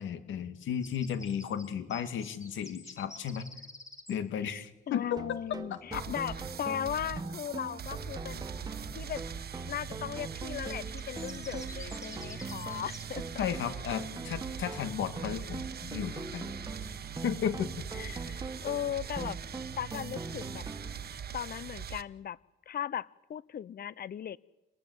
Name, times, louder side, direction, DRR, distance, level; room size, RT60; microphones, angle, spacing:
voice 1, 0.0-3.5 4.1-5.2 5.7-6.0 13.4-16.6 17.2-17.9, left 8 dB, 75° left, 9 dB, 2.3 m, -34 dB
sound 1, 0.8-4.1 8.0-8.1 10.5-13.6, left 2 dB, 15° left, 3.1 m, -50 dB
voice 2, 4.4-8.4 8.9-9.2 9.7-13.2 17.9-20.6 21.3-22.4 22.7-24.4, left 9 dB, 50° left, 20 dB, 0.8 m, -37 dB
sound 2, 5.2-21.2, right 3 dB, 20° right, 1.5 m, -43 dB
sound 3, 5.9-22.0, right 8 dB, 50° right, 1.2 m, -42 dB
27.5 x 20.0 x 8.1 m, 1.0 s
cardioid pair, 90°, 20 cm